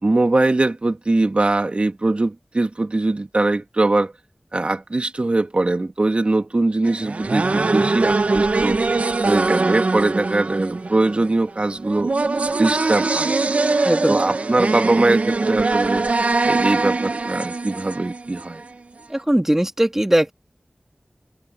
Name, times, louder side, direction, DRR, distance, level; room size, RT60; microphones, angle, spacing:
voice 1, 0.0-4.1 4.5-8.8 9.2-12.1 12.6-13.4 14.1-16.1 16.5-18.6, right 2 dB, 55° right, 2.1 m, -21 dB
sound 1, 6.8-18.7, right 3 dB, 80° right, 0.9 m, -22 dB
voice 2, 13.8-14.2 19.1-20.3, right 1 dB, 15° right, 2.7 m, -19 dB
wide cardioid pair, 40°, 2 cm